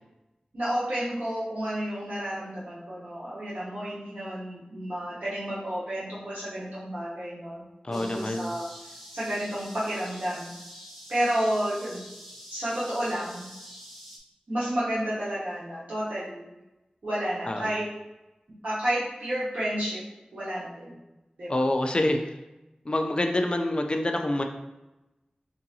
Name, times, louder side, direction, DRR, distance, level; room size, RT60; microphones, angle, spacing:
voice 1, 0.5-7.6 7.9-8.7 9.1-10.5 11.1-12.0 12.5-13.5 14.5-16.5 17.0-17.9 18.6-20.0 20.3-20.9 21.4-21.6, equal, 80° right, -10 dB, 1.0 m, -31 dB
voice 2, 7.8-8.6 17.5-17.7 21.5-22.3 22.9-24.4, left 1 dB, 40° left, 4 dB, 0.5 m, -26 dB
sound 1, 7.9-14.2, equal, 5° right, 1.0 m, -46 dB
4.6 x 2.5 x 2.8 m, 0.99 s
wide cardioid pair, 50°, 3 cm